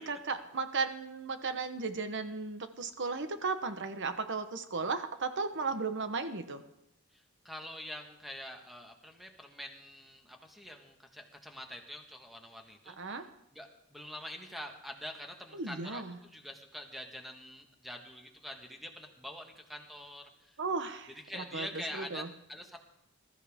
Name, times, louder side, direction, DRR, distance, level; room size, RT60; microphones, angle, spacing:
voice 1, 0.0-6.6 13.0-13.3 15.5-16.2 20.6-21.7 21.9-22.3, right 4 dB, 60° right, 9 dB, 1.1 m, -35 dB
voice 2, 7.1-20.6 21.1-22.8, left 1 dB, ahead, 3 dB, 1.6 m, -45 dB
21.0 x 13.5 x 3.6 m, 0.81 s
head